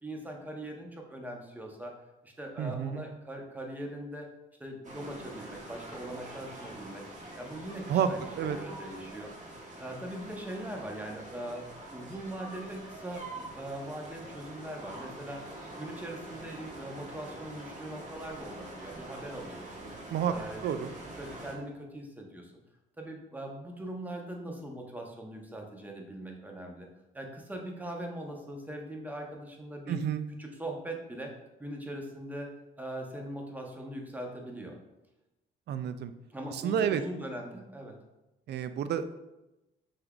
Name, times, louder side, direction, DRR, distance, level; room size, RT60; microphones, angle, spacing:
voice 1, 0.0-2.0 2.2-4.3 4.6-7.1 7.4-9.3 9.8-11.7 11.9-15.4 15.8-19.9 20.3-20.7 21.2-22.5 23.0-26.9 27.1-30.0 30.4-31.3 31.6-32.5 32.8-34.8 36.3-38.0, right 1 dB, 10° right, 1 dB, 0.8 m, -41 dB
voice 2, 2.6-3.1 7.9-8.1 8.3-8.6 20.1-20.3 20.6-20.9 29.9-30.2 35.7-36.1 36.6-37.0 38.5-39.1, right 9 dB, 60° right, 11 dB, 0.4 m, -29 dB
sound 1, 4.8-21.5, right 1 dB, 40° right, 1.1 m, -45 dB
5.5 x 3.4 x 2.3 m, 0.97 s
cardioid pair, 90°, 20 cm